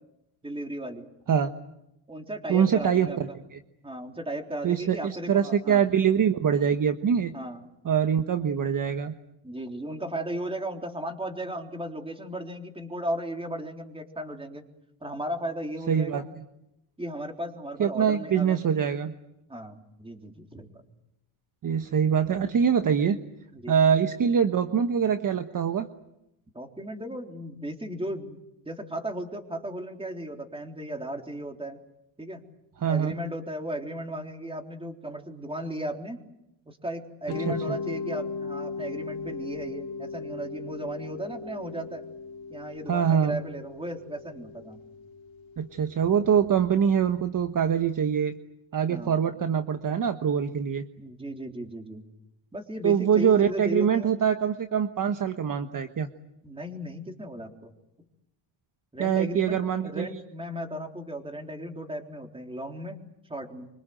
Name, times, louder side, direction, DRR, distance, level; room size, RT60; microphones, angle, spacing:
voice 1, 0.4-1.1 2.1-3.4 3.8-5.8 7.3-7.6 9.4-14.6 15.0-16.2 17.0-18.6 19.5-20.7 23.5-23.7 26.5-28.4 28.7-31.8 32.2-32.4 32.9-36.2 36.7-42.1 42.5-44.8 48.9-49.2 51.0-52.0 52.5-54.1 56.4-57.7 58.9-63.0 63.3-63.7, right 1 dB, 10° right, 3 dB, 3.7 m, -36 dB
voice 2, 2.5-3.6 4.6-7.3 7.8-9.1 15.9-16.2 17.8-19.1 21.6-23.2 23.7-25.9 32.8-33.1 37.3-37.8 42.9-43.4 45.6-48.3 48.7-50.8 52.8-56.1 59.0-60.1, right 7 dB, 40° right, 7 dB, 1.3 m, -24 dB
Mallet percussion, 37.3-46.1, left 5 dB, 70° left, 2.5 m, -38 dB
26.0 x 24.5 x 7.9 m, 0.84 s
cardioid pair, 110°, 49 cm